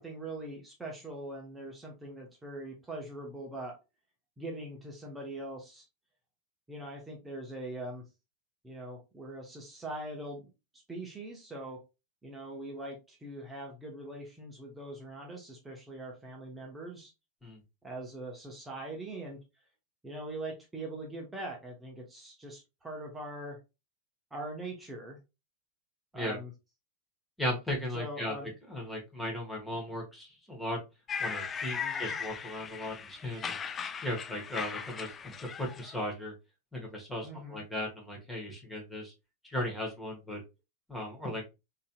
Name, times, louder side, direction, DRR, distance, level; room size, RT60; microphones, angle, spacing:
voice 1, 0.0-3.7 4.4-5.9 6.7-8.0 8.6-10.5 10.9-11.8 12.2-17.1 17.8-19.4 20.0-23.6 24.3-25.2 26.1-26.5 27.9-28.5 31.8-32.1 37.2-37.6, right 1 dB, 10° right, -1 dB, 0.9 m, -42 dB
voice 2, 27.4-30.8 31.2-33.6 34.0-36.3 36.7-39.1 39.4-40.4 40.9-41.4, left 1 dB, 5° left, -1 dB, 1.3 m, -37 dB
sound 1, 31.1-36.0, left 6 dB, 25° left, 0.4 m, -38 dB
3.9 x 2.8 x 2.2 m, 0.26 s
figure-of-eight pair, 90°, 0 cm